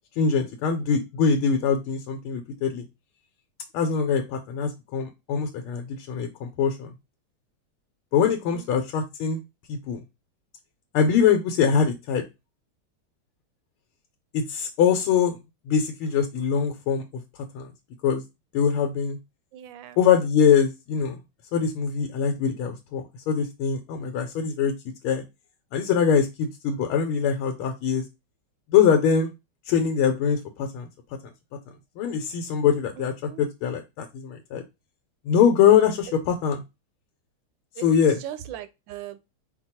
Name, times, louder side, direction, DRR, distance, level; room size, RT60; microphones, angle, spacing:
voice 1, 0.2-2.8 3.7-6.9 8.1-9.4 9.7-10.0 10.9-12.2 14.3-15.4 15.7-17.0 17.5-17.7 18.0-18.2 18.5-19.2 20.0-21.2 21.5-24.7 25.0-25.2 25.7-28.0 28.7-29.3 29.7-30.9 32.0-33.1 33.4-34.6 35.3-36.6 37.8-38.2, left 7 dB, 90° left, 1.5 m, -23 dB
voice 2, 19.5-20.0 33.0-33.5 37.8-39.2, right 10 dB, 75° right, 1.1 m, -39 dB
4.6 x 2.2 x 4.1 m
omnidirectional pair, 2.3 m